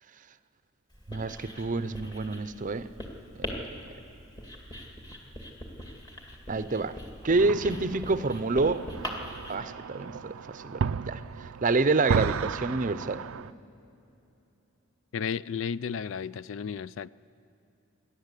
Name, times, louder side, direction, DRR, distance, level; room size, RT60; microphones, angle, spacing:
Writing, 0.9-9.5, equal, 20° left, 2.3 m, -41 dB
voice 1, 1.1-2.9 3.4-3.6 6.5-7.0 7.2-8.8 9.5-13.2, right 3 dB, 40° right, 13 dB, 0.6 m, -28 dB
sound 1, 7.4-13.5, right 6 dB, 90° right, 0.4 m, -34 dB
voice 2, 15.1-17.1, left 6 dB, 70° left, 18 dB, 0.4 m, -33 dB
28.5 x 11.5 x 8.2 m, 2.9 s
head